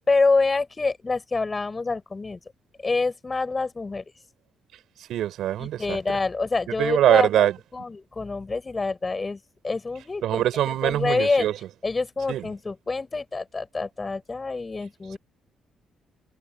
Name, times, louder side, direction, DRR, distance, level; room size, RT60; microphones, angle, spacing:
voice 1, 0.0-2.4 2.8-4.0 5.6-11.5 11.8-15.2, left 3 dB, 25° left, 6.4 m, -26 dB
voice 2, 5.1-6.0 6.8-7.6 10.2-11.5 12.3-12.5, right 12 dB, 80° right, 5.3 m, -22 dB
cardioid pair, 90°, 0 cm